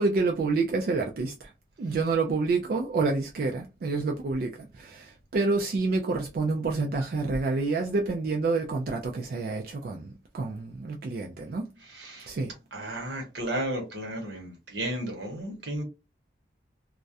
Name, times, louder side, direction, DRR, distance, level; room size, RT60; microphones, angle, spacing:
voice 1, 0.0-1.5 1.8-11.7 12.3-12.5, right 3 dB, 50° right, 0.3 m, -28 dB
voice 2, 11.9-12.3 12.7-15.8, right 1 dB, 70° right, 0.9 m, -33 dB
2.3 x 2.1 x 2.6 m
head